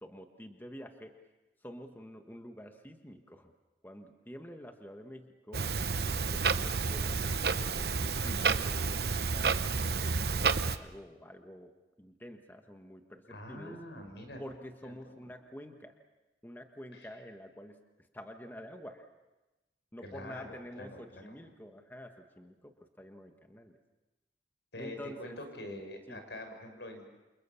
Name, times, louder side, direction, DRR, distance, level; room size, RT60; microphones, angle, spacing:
voice 1, 0.0-1.1 1.6-3.5 3.8-5.7 6.1-9.6 10.0-11.7 12.0-13.8 14.4-15.9 16.4-17.8 18.1-19.1 19.9-23.8 24.8-25.4 26.1-26.2, equal, 10° left, 5 dB, 1.4 m, -48 dB
Clock, 5.5-10.8, right 5 dB, 60° right, 0.9 m, -30 dB
voice 2, 13.3-14.4 14.8-15.3 16.9-17.1 20.0-21.3 24.7-27.0, left 1 dB, 85° left, 5 dB, 6.2 m, -45 dB
28.5 x 28.0 x 7.1 m, 1.1 s
head